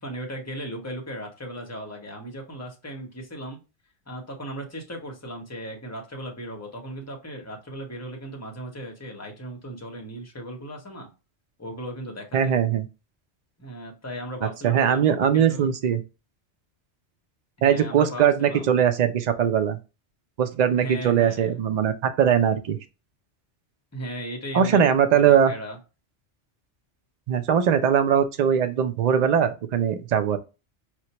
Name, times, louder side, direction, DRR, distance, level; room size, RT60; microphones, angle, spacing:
voice 1, 0.0-3.6 4.1-11.1 11.6-12.6 13.6-15.7 17.6-18.7 20.7-21.6 23.9-24.8 25.1-25.8, right 1 dB, 15° left, 0.7 m, -37 dB
voice 2, 12.3-12.9 14.6-16.0 17.6-19.8 20.4-22.8 24.5-25.5 27.3-30.4, right 8 dB, 55° right, 0.5 m, -21 dB
4.4 x 2.1 x 2.8 m
omnidirectional pair, 1.2 m